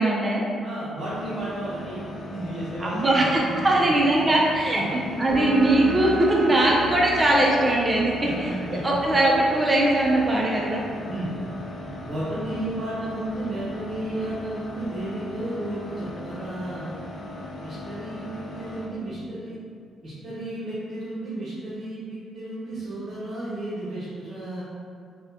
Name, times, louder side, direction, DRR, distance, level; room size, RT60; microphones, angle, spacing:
voice 1, 0.0-0.4 2.8-8.1 8.4-8.5 8.8-10.8, right 1 dB, 25° right, -3 dB, 0.4 m, -21 dB
voice 2, 0.6-2.0 2.3-3.3 3.6-3.9 4.8-4.9 8.2-8.8 11.1-11.3 12.0-17.1 17.6-19.5 20.0-24.6, right 1 dB, 50° right, -10 dB, 0.8 m, -33 dB
sound 1, 1.0-18.9, left 1 dB, 55° left, 0.5 m, -38 dB
sound 2, 5.3-12.6, right 2 dB, 80° right, 0.4 m, -35 dB
3.4 x 2.1 x 2.7 m, 2.4 s
cardioid pair, 90°, 0 cm